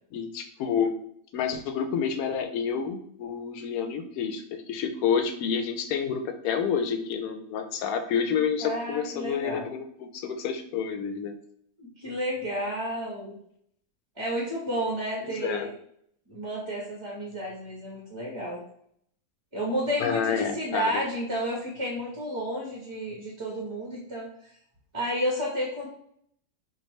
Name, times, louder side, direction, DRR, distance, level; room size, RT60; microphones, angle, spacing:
voice 1, 0.1-0.9 1.3-11.3 15.2-15.7 20.0-21.0, left 7 dB, 85° left, 7 dB, 1.1 m, -29 dB
voice 2, 8.6-9.7 11.8-13.4 14.2-15.7 16.3-18.6 19.5-24.5 24.9-25.9, equal, 25° right, -3 dB, 0.8 m, -31 dB
4.7 x 2.5 x 3.1 m, 0.69 s
omnidirectional pair, 1.5 m